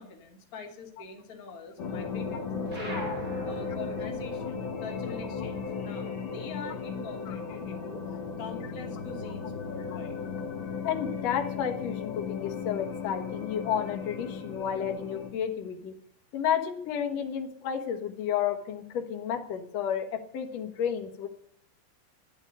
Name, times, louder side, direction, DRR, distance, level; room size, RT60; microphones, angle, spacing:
voice 1, 0.0-8.0 8.4-10.2, left 4 dB, 30° left, 1 dB, 1.6 m, -44 dB
sound 1, 1.8-15.3, left 5 dB, 60° left, 1.2 m, -36 dB
sound 2, 2.7-7.5 7.8-9.3, right 1 dB, 25° right, 4.6 m, -45 dB
voice 2, 10.8-15.9 16.3-21.3, left 8 dB, 75° left, 3 dB, 1.5 m, -31 dB
10.5 x 10.0 x 9.8 m, 0.68 s
omnidirectional pair, 5.3 m